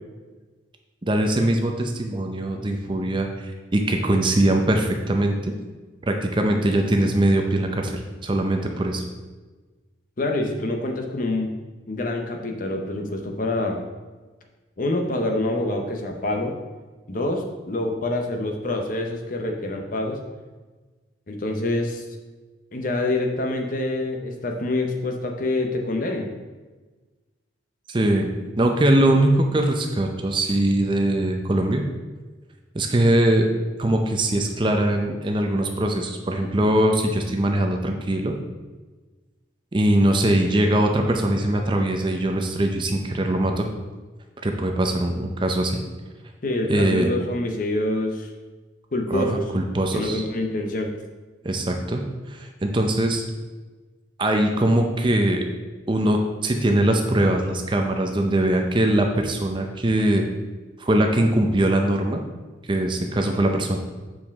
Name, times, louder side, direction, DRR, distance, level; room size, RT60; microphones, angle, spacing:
voice 1, 1.0-5.5 6.0-9.0 27.9-28.3 28.6-31.8 32.7-33.5 33.8-38.3 39.7-43.7 44.4-45.8 46.7-47.1 49.1-50.2 51.4-52.0 52.3-53.2 54.2-55.5 55.9-60.3 60.8-62.2 62.7-63.8, right 1 dB, 25° right, 4 dB, 0.5 m, -21 dB
voice 2, 10.2-11.6 11.9-13.8 14.8-16.5 17.1-20.2 21.3-22.0 22.7-26.3 40.5-40.7 46.4-48.3 48.9-49.4 49.9-50.9, left 2 dB, 45° left, 3 dB, 0.8 m, -26 dB
7.2 x 4.9 x 3.5 m, 1.3 s
head